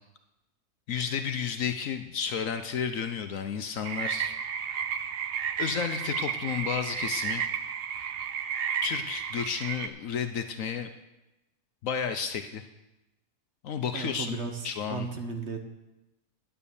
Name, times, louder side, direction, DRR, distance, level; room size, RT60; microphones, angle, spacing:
voice 1, 0.9-4.3 5.6-7.4 8.8-10.9 11.8-12.6 13.6-14.4 14.6-15.1, left 7 dB, 65° left, 8 dB, 1.0 m, -32 dB
sound 1, 3.8-9.9, right 8 dB, 80° right, 0.5 m, -32 dB
voice 2, 13.9-15.6, right 4 dB, 45° right, 4 dB, 1.2 m, -35 dB
9.9 x 9.2 x 7.0 m, 0.98 s
omnidirectional pair, 1.7 m